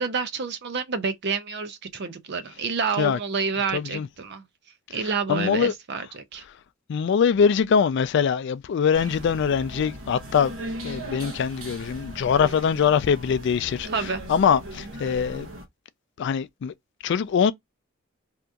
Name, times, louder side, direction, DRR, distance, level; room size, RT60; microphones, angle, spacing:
voice 1, 0.0-4.4 4.9-6.4 13.9-14.2, right 5 dB, 55° right, 0.5 m, -28 dB
voice 2, 3.7-4.1 4.9-5.0 5.3-5.7 6.9-10.5 10.8-13.9 14.3-15.5 16.2-16.7 17.0-17.5, left 7 dB, 60° left, 0.3 m, -23 dB
sound 1, 8.9-15.7, right 1 dB, 80° right, 1.0 m, -38 dB
2.8 x 2.5 x 3.4 m
head